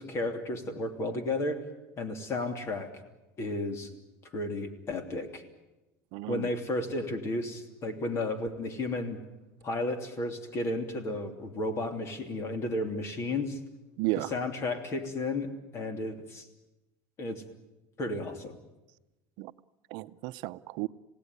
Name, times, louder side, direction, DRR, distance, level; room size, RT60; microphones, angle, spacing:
voice 1, 0.0-1.6 2.0-2.9 3.4-3.9 4.3-5.4 6.3-9.2 9.6-13.6 14.2-16.5 17.2-17.4 18.0-18.6, left 2 dB, 35° left, 7 dB, 3.0 m, -33 dB
voice 2, 6.1-6.5 14.0-14.3 19.4-19.5 19.9-20.9, right 19 dB, 65° right, 12 dB, 0.8 m, -33 dB
27.0 x 17.5 x 9.7 m, 1.0 s
cardioid pair, 140°, 8 cm